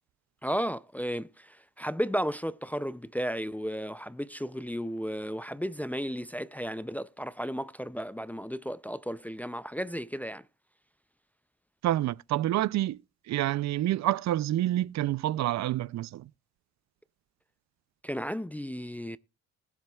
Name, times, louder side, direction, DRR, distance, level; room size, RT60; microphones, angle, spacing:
voice 1, 0.4-10.4 18.0-19.2, equal, 5° left, 0.4 m, -34 dB
voice 2, 11.8-13.0 13.3-16.3, right 14 dB, 65° right, 0.5 m, -28 dB
20.5 x 7.5 x 2.3 m
cardioid pair, 90°, 30 cm